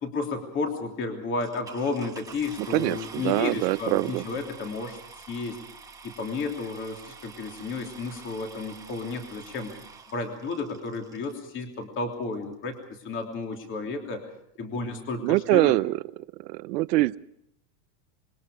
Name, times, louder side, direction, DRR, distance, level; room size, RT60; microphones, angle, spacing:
voice 1, 0.0-5.0 5.3-5.6 6.0-9.7 10.1-12.8 13.0-14.3 14.6-15.8, left 4 dB, 25° left, 3 dB, 3.1 m, -32 dB
sound 1, 1.4-11.4 12.1-12.2 12.7-12.8 13.0-13.3, right 5 dB, 5° right, 1.5 m, -47 dB
voice 2, 2.6-4.2 15.2-16.0 16.4-17.2, right 19 dB, 75° right, 15 dB, 0.8 m, -24 dB
27.0 x 21.5 x 5.0 m, 0.72 s
supercardioid pair, 165°, 49 cm